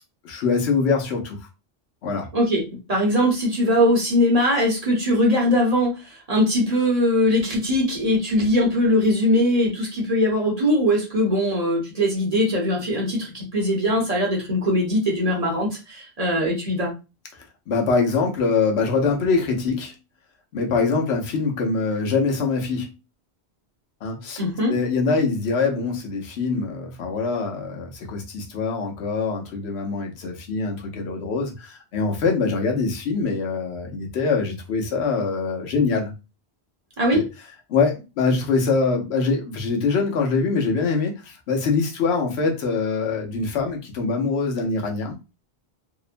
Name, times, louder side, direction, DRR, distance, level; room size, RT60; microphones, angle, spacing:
voice 1, 0.2-1.4 2.0-2.3 17.3-19.9 20.5-22.9 24.0-24.4 24.7-36.1 37.1-37.2 37.7-45.1, left 4 dB, 80° left, 0.9 m, -24 dB
voice 2, 2.3-2.6 2.9-16.9 24.4-24.7 37.0-37.2, left 1 dB, 40° right, 0.9 m, -21 dB
2.8 x 2.0 x 2.4 m
omnidirectional pair, 1.1 m